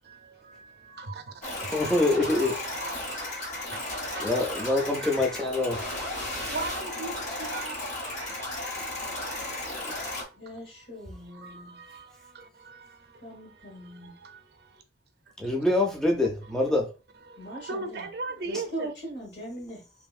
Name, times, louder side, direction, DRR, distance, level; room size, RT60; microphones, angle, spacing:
voice 1, 0.0-1.5 1.8-4.4 4.7-7.8 8.1-9.1 9.5-9.8 10.3-10.4 11.3-14.8 17.3-18.9, right 3 dB, 60° right, 0.5 m, -41 dB
sound 1, 1.4-10.2, left 1 dB, 40° left, 0.7 m, -34 dB
voice 2, 1.7-2.6 4.2-5.8 15.4-16.9, left 2 dB, 5° left, 0.4 m, -25 dB
voice 3, 10.4-11.8 13.2-14.2 17.4-18.1 18.5-19.9, right 1 dB, 75° left, 1.3 m, -40 dB
2.7 x 2.5 x 2.3 m
head